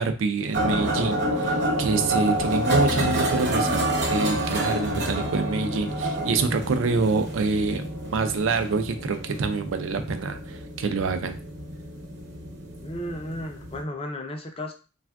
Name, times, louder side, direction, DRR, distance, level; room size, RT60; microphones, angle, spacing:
voice 1, 0.0-11.4, right 4 dB, 90° right, 7 dB, 0.4 m, -26 dB
sound 1, 0.5-13.8, right 1 dB, 60° right, 0.8 m, -28 dB
voice 2, 12.8-14.7, left 1 dB, 30° left, 5 dB, 0.4 m, -34 dB
3.4 x 2.4 x 2.2 m, 0.34 s
head